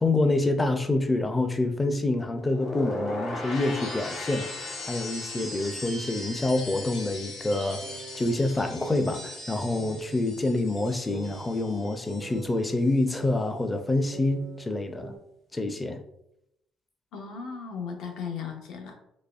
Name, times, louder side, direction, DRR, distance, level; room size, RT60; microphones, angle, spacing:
voice 1, 0.0-15.1 15.5-16.0, left 2 dB, 15° left, 7 dB, 0.4 m, -27 dB
sound 1, 2.4-12.5 12.8-13.2, left 1 dB, 60° left, 1.2 m, -38 dB
sound 2, 7.8-9.3 9.7-10.2 11.1-12.8 13.2-14.8 15.0-15.2, right 4 dB, 85° right, 0.5 m, -44 dB
voice 2, 17.1-18.9, left 6 dB, 80° left, 3 dB, 0.7 m, -36 dB
4.0 x 2.9 x 2.4 m, 0.80 s
cardioid pair, 120°, 0 cm